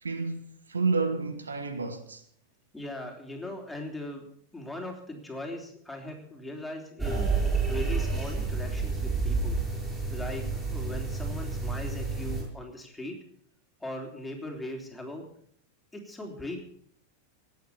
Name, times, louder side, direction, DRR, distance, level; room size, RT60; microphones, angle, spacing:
voice 1, 0.0-2.2, right 4 dB, 75° right, 1.3 m, -30 dB
voice 2, 2.7-4.2 4.5-7.2 7.7-9.6 10.1-13.2 13.8-15.3 15.9-16.6, left 1 dB, 5° left, 3.6 m, -39 dB
sound 1, 7.0-12.4, right 4 dB, 15° right, 7.1 m, -29 dB
18.5 x 8.3 x 7.1 m
figure-of-eight pair, 90°, 0 cm